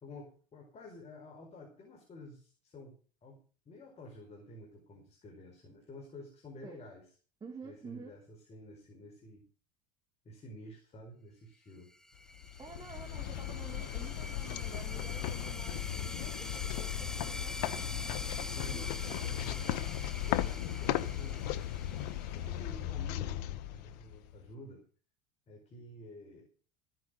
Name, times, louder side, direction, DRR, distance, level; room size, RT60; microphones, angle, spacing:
voice 1, 0.0-3.4 3.6-7.0 7.6-8.2 8.5-9.4 10.2-11.9 18.4-18.9 19.7-19.9 20.3-21.5 22.3-24.8 25.5-26.5, left 1 dB, 30° left, 1 dB, 4.7 m, -50 dB
voice 2, 7.4-8.1 12.6-19.8, right 5 dB, 20° right, 2 dB, 2.2 m, -51 dB
sound 1, 11.9-23.2, left 1 dB, 5° left, 0.8 m, -45 dB
sound 2, 12.3-24.4, left 12 dB, 75° left, 0.9 m, -36 dB
15.0 x 9.2 x 5.1 m, 0.39 s
supercardioid pair, 110°, 21 cm